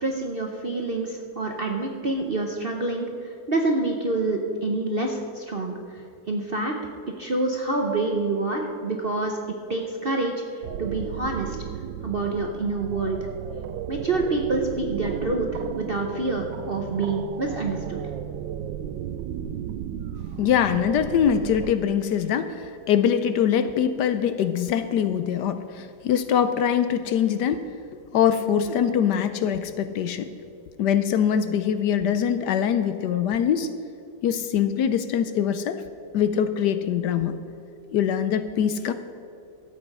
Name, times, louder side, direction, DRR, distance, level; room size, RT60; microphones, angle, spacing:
voice 1, 0.0-6.8 7.2-9.4 9.7-11.6 12.0-13.3 13.9-18.0, right 2 dB, 45° right, 2 dB, 0.7 m, -27 dB
sound 1, 10.6-21.7, right 9 dB, 80° right, 1.2 m, -34 dB
voice 2, 20.4-27.6 28.1-30.3 30.8-33.7 34.2-35.8 36.1-37.3 37.9-38.9, left 8 dB, 70° left, 10 dB, 1.1 m, -23 dB
13.0 x 8.4 x 5.4 m, 2.5 s
omnidirectional pair, 2.0 m